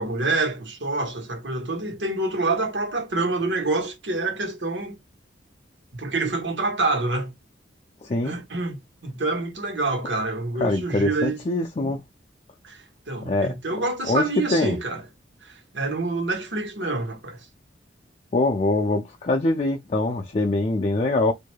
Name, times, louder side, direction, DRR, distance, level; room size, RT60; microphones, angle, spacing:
voice 1, 0.0-5.0 5.9-7.3 8.2-11.4 11.8-11.9 12.6-12.8 13.1-15.0 15.4-17.4, right 3 dB, 70° right, 1.4 m, -27 dB
voice 2, 8.0-8.3 10.6-12.0 13.2-13.5 14.0-14.8 18.3-21.3, left 2 dB, 35° left, 0.5 m, -23 dB
4.7 x 2.7 x 2.2 m
head